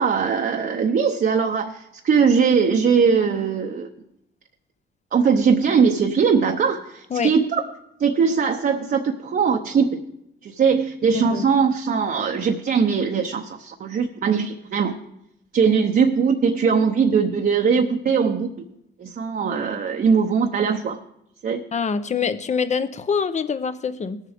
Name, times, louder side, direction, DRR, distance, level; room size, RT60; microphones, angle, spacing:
voice 1, 0.0-3.9 5.1-7.6 8.0-10.0 10.4-15.0 15.5-18.5 19.0-21.0 21.4-21.6, right 6 dB, 50° right, 3 dB, 0.8 m, -20 dB
voice 2, 11.1-11.5 21.7-24.2, left 6 dB, 35° left, 12 dB, 0.7 m, -25 dB
18.0 x 7.3 x 3.5 m, 0.81 s
cardioid pair, 90°, 20 cm